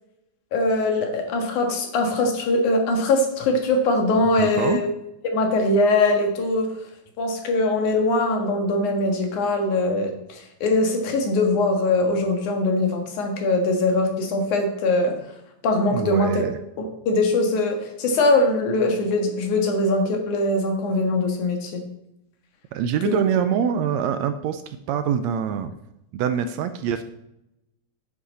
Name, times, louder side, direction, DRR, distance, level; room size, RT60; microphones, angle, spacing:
voice 1, 0.5-4.9 5.2-6.7 7.2-15.1 15.6-16.4 16.8-21.8 23.0-23.2, left 2 dB, 80° left, 3 dB, 3.0 m, -22 dB
voice 2, 4.4-4.8 15.9-16.5 22.7-25.7 26.1-27.0, right 8 dB, 80° right, 10 dB, 1.7 m, -24 dB
10.0 x 8.3 x 4.2 m, 0.85 s
omnidirectional pair, 3.5 m